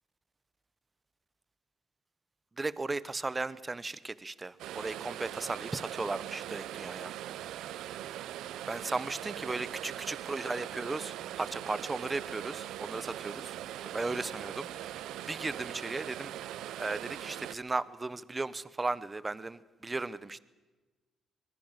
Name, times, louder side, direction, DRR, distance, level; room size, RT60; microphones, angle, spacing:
voice 1, 2.6-7.4 8.7-13.5 13.8-15.0 15.3-16.3 16.8-20.4, right 3 dB, 20° right, 17 dB, 1.1 m, -36 dB
sound 1, 4.6-17.5, right 12 dB, 85° right, 0.7 m, -41 dB
24.5 x 21.0 x 7.5 m, 1.2 s
cardioid pair, 90°, 0 cm